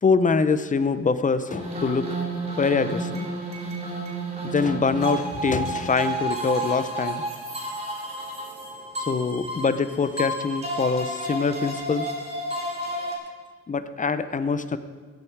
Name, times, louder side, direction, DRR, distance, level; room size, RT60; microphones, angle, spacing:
voice 1, 0.0-2.1 2.6-3.3 4.4-7.2 9.1-12.1 13.7-14.8, left 4 dB, 25° left, 12 dB, 0.7 m, -24 dB
sound 1, 1.5-13.1, right 1 dB, 20° right, 3.7 m, -31 dB
16.0 x 9.2 x 4.7 m, 1.5 s
cardioid pair, 90°, 30 cm